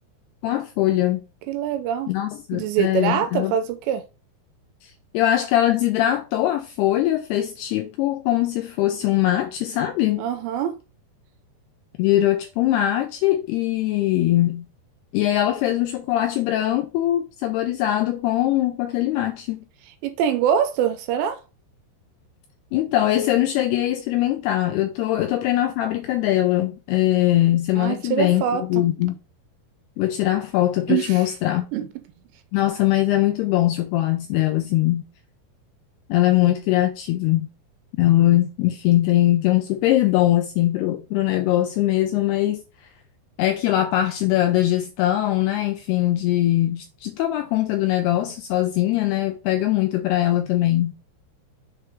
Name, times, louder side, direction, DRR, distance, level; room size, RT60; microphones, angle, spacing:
voice 1, 0.4-1.2 2.1-3.6 4.8-10.3 12.0-14.7 15.1-19.7 22.7-29.2 30.0-31.6 32.5-35.0 36.1-37.5 38.0-42.6 43.4-50.9, left 14 dB, 90° left, 2.3 m, -21 dB
voice 2, 1.5-2.1 2.5-4.0 10.2-10.8 20.0-21.4 27.8-28.8 30.9-31.2 31.7-31.9, right 9 dB, 85° right, 2.6 m, -24 dB
7.1 x 3.3 x 4.5 m
omnidirectional pair, 5.3 m